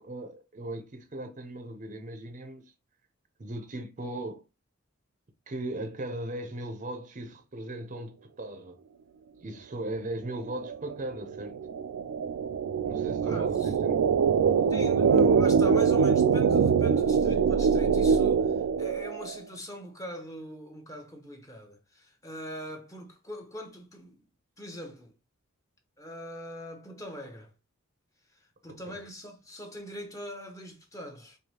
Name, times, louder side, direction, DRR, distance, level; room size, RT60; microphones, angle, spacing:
voice 1, 0.0-2.6 3.4-4.4 5.5-8.8 9.4-11.6 12.8-14.0 28.9-29.0, right 1 dB, 35° right, 0.6 m, -38 dB
sound 1, 10.5-19.4, right 6 dB, 80° right, 0.3 m, -24 dB
voice 2, 13.2-13.7 14.7-24.2 24.6-25.1 26.0-27.5 28.3-31.4, equal, 15° left, 0.8 m, -42 dB
4.7 x 2.7 x 2.8 m
head